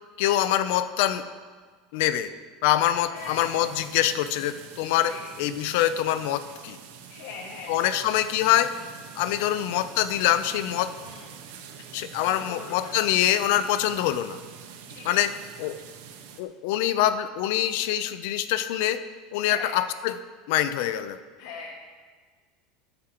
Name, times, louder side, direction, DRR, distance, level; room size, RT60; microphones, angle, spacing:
voice 1, 0.2-1.2 1.9-2.3 2.6-5.1 5.4-6.8 7.7-8.7 9.2-10.9 11.9-14.4 15.0-15.3 15.6-15.8 16.4-19.0 19.3-20.2 20.5-21.2, left 12 dB, 60° left, 12 dB, 0.6 m, -24 dB
voice 2, 3.0-3.6 5.0-5.2 7.1-7.7 9.4-9.6 11.0-11.3 12.2-13.0 14.9-15.3 19.4-19.7 21.4-21.7, left 5 dB, 85° left, -2 dB, 1.8 m, -41 dB
sound 1, 3.1-16.4, right 7 dB, 75° right, 1.3 m, -45 dB
21.5 x 8.7 x 3.0 m, 1.5 s
cardioid pair, 180°, 0 cm